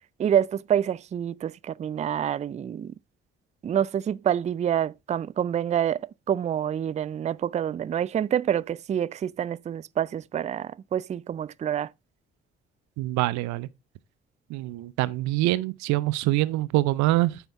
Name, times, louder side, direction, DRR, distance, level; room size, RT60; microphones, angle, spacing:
voice 1, 0.2-2.9 3.6-11.9, right 9 dB, 25° right, 0.4 m, -27 dB
voice 2, 13.0-13.7 14.5-17.4, right 17 dB, 65° right, 0.7 m, -25 dB
8.9 x 7.2 x 3.5 m
figure-of-eight pair, 40°, 31 cm